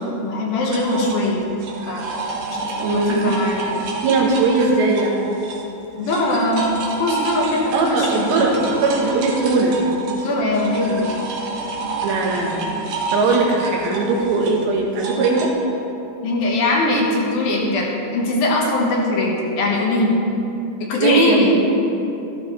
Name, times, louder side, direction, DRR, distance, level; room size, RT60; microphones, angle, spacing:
voice 1, 0.0-1.5 1.9-2.1 2.5-3.8 6.0-8.3 10.1-11.1 16.2-20.2 20.8-21.5, left 1 dB, 65° left, -2 dB, 2.9 m, -21 dB
sound 1, 0.7-5.7 6.0-15.5, right 3 dB, 70° right, 2.8 m, -29 dB
voice 2, 2.8-3.3 4.0-5.2 7.7-9.8 12.0-12.7 13.1-15.5 21.0-21.4, right 3 dB, 90° right, 0 dB, 3.5 m, -19 dB
14.5 x 11.5 x 3.3 m, 2.9 s
omnidirectional pair, 4.9 m